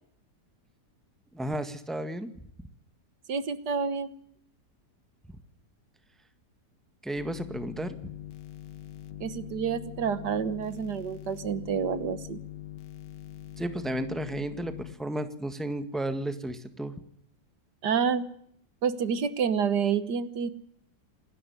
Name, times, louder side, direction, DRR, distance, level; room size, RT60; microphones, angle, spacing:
voice 1, 1.3-2.3 7.0-8.1 13.6-16.9, right 1 dB, ahead, 10 dB, 1.5 m, -33 dB
voice 2, 3.3-4.1 9.2-12.4 17.8-18.3 18.8-20.5, right 6 dB, 75° right, 14 dB, 1.8 m, -28 dB
sound 1, 7.2-15.0, left 12 dB, 85° left, 1.9 m, -42 dB
27.5 x 12.0 x 9.7 m, 0.68 s
omnidirectional pair, 1.8 m